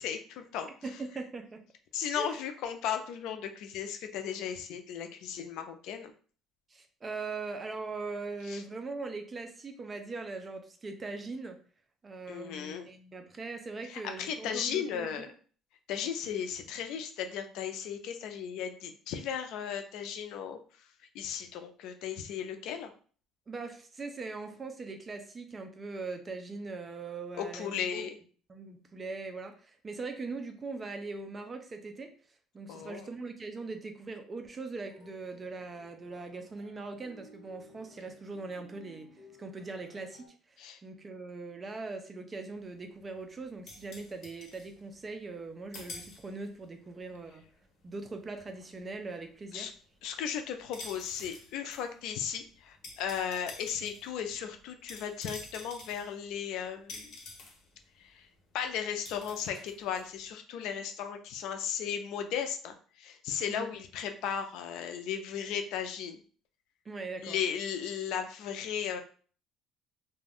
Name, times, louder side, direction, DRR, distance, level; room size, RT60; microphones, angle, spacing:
voice 1, 0.0-0.7 1.9-6.1 8.5-8.6 12.3-12.9 13.8-15.3 15.9-20.6 21.1-22.9 27.3-28.2 32.7-33.1 40.6-40.8 49.5-49.7 50.0-57.2 58.0-58.3 58.5-66.2 67.2-69.0, left 8 dB, 70° left, 6 dB, 0.4 m, -36 dB
voice 2, 0.8-1.6 2.1-2.4 6.7-11.6 12.0-15.2 23.5-28.1 28.5-32.1 32.5-39.1 39.4-40.6 40.8-47.5 47.8-49.7 63.5-63.7 66.9-67.4, right 3 dB, 25° right, 7 dB, 0.4 m, -41 dB
sound 1, 34.7-40.3, left 2 dB, 20° left, 1.2 m, -57 dB
sound 2, 42.6-45.5 45.7-46.7 47.0-60.3, left 3 dB, 50° left, 1.1 m, -49 dB
2.4 x 2.2 x 3.4 m, 0.42 s
cardioid pair, 140°, 0 cm